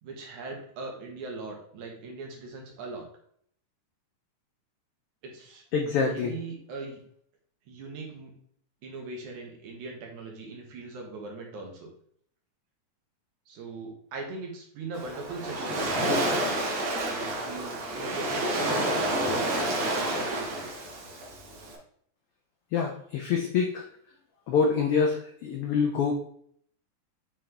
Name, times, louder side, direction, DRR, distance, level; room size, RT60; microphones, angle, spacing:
voice 1, 0.0-3.1 5.2-5.6 6.0-7.0 7.7-8.3 8.8-11.9 13.5-16.2 17.1-20.7, right 3 dB, 75° right, 0 dB, 2.7 m, -40 dB
voice 2, 5.7-6.3 22.7-23.8 24.5-26.1, left 5 dB, 85° left, 2 dB, 1.2 m, -26 dB
Waves surf, 14.9-21.7, right 1 dB, 55° right, 2.1 m, -29 dB
7.4 x 4.2 x 3.3 m, 0.64 s
omnidirectional pair, 3.5 m